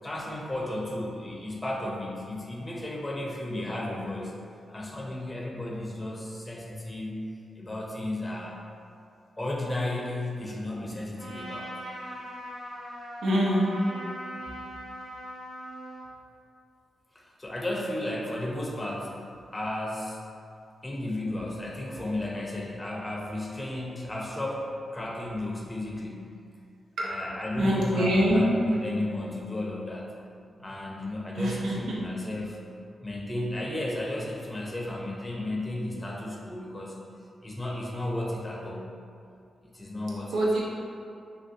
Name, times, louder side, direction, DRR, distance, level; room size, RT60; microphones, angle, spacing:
voice 1, 0.0-4.4 4.7-7.2 7.6-8.6 9.4-11.7 17.1-19.2 19.5-20.2 20.8-26.3 27.0-30.1 30.6-32.6 33.0-37.0 37.4-38.9 39.6-40.4, left 1 dB, 25° left, -3 dB, 0.6 m, -34 dB
Trumpet, 11.2-16.1, equal, 60° right, 1.1 m, -40 dB
voice 2, 13.2-13.8 27.0-27.2 27.6-28.4 31.4-32.0 40.3-40.6, equal, 80° right, -5 dB, 0.5 m, -25 dB
3.2 x 2.3 x 2.7 m, 2.5 s
supercardioid pair, 40°, 0 cm